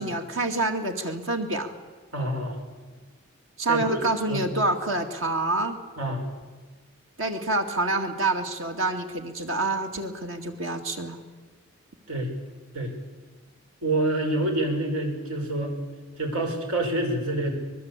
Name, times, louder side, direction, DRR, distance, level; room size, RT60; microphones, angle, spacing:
voice 1, 0.0-1.7 3.6-5.8 7.2-11.2, right 2 dB, 65° right, 5 dB, 2.4 m, -27 dB
voice 2, 2.1-2.6 3.7-4.0 4.3-4.5 6.0-6.3 12.1-12.3 12.7-12.9 13.8-15.8 16.2-17.5, right 1 dB, 90° right, 3 dB, 5.4 m, -27 dB
24.5 x 21.0 x 8.3 m, 1.4 s
head